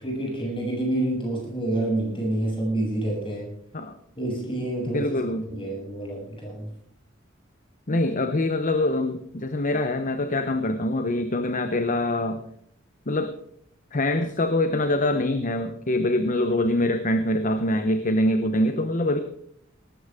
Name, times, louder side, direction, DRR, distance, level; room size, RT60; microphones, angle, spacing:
voice 1, 0.0-3.5 4.2-5.1 5.5-6.7, right 1 dB, 25° left, -1 dB, 7.9 m, -28 dB
voice 2, 4.9-5.5 7.9-12.4 13.1-13.3 13.9-19.2, left 1 dB, 40° left, 9 dB, 1.0 m, -24 dB
18.5 x 15.0 x 3.7 m, 0.67 s
head